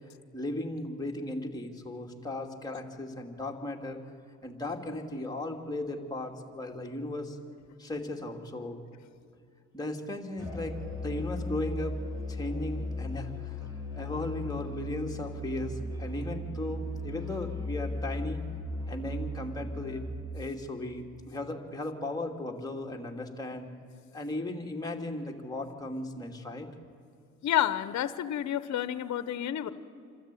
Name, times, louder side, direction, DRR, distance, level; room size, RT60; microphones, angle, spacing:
voice 1, 0.3-4.0 4.4-7.4 7.8-8.8 9.7-12.0 12.3-13.6 13.9-18.4 18.9-20.0 20.3-23.7 24.1-26.7, left 1 dB, 15° left, 1 dB, 2.7 m, -36 dB
Musical instrument, 10.4-20.3, left 1 dB, 15° right, 5.4 m, -37 dB
voice 2, 27.4-29.7, left 11 dB, 65° left, 13 dB, 1.0 m, -29 dB
27.0 x 13.0 x 9.2 m, 2.4 s
cardioid pair, 90°, 30 cm